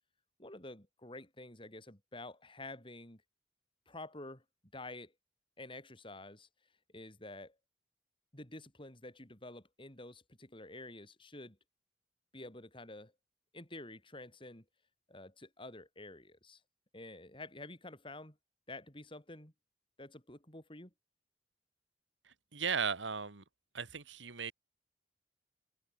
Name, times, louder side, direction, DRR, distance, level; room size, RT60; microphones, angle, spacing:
voice 1, 0.4-3.2 3.9-4.4 4.7-5.1 5.6-6.5 6.9-7.6 8.3-11.6 12.3-13.1 13.5-14.6 15.1-16.6 16.9-18.4 18.7-19.5 20.0-20.9, left 2 dB, 30° left, 6.5 m, -49 dB
voice 2, 22.3-23.4 23.7-24.5, right 6 dB, 90° right, 2.0 m, -36 dB
head